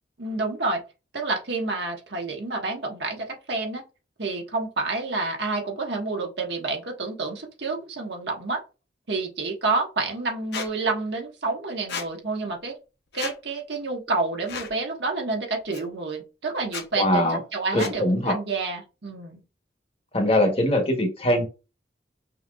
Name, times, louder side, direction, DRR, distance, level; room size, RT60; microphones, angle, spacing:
voice 1, 0.2-0.8 1.1-3.8 4.2-8.6 9.1-12.7 13.1-19.4, right 3 dB, 70° right, 2 dB, 1.2 m, -29 dB
Squeak, 10.5-10.7 11.9-12.1 13.1-13.4 14.5-14.7 15.7-15.8 16.6-16.8 17.8-18.0, left 5 dB, 60° left, 0.7 m, -33 dB
voice 2, 16.9-17.4 17.7-18.4 20.1-21.5, left 1 dB, 30° left, 4 dB, 0.9 m, -22 dB
5.7 x 2.8 x 2.3 m, 0.30 s
head